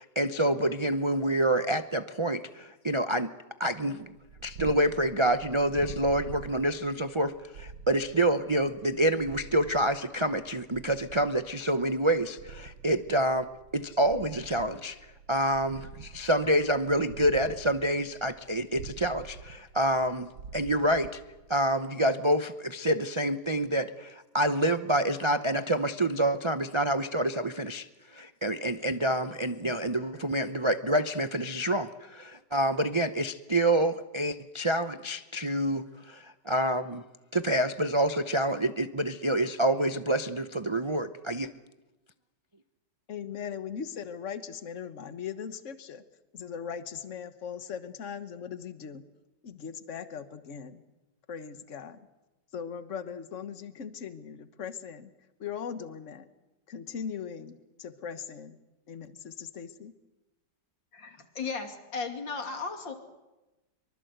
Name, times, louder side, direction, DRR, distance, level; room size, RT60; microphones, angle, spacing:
voice 1, 0.0-3.3 3.6-4.1 4.4-13.5 13.7-15.0 15.3-21.1 21.5-27.9 28.1-37.0 37.3-41.5, right 1 dB, 40° right, 9 dB, 0.4 m, -27 dB
Purr, 4.1-21.8, right 5 dB, 75° right, 1.9 m, -47 dB
voice 2, 43.1-46.0 46.3-49.0 49.4-50.8 51.3-52.1 52.5-55.1 55.4-56.3 56.7-58.6 58.9-59.9, left 7 dB, 45° left, 10 dB, 1.5 m, -39 dB
voice 3, 60.9-62.9, left 4 dB, 85° left, 5 dB, 3.3 m, -35 dB
24.5 x 24.0 x 8.0 m, 1.1 s
omnidirectional pair, 2.0 m